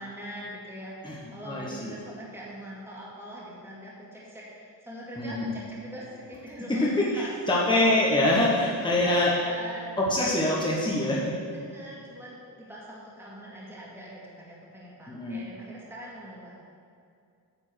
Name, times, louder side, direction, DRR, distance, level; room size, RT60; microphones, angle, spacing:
voice 1, 0.0-7.3 8.6-9.9 10.4-10.8 11.5-16.6, equal, 5° right, -7 dB, 2.1 m, -43 dB
voice 2, 1.4-2.0 5.2-5.3 6.7-9.3 10.0-11.3 15.1-15.4, left 1 dB, 10° left, -5 dB, 1.2 m, -24 dB
9.7 x 4.5 x 7.7 m, 2.4 s
wide cardioid pair, 130°, 43 cm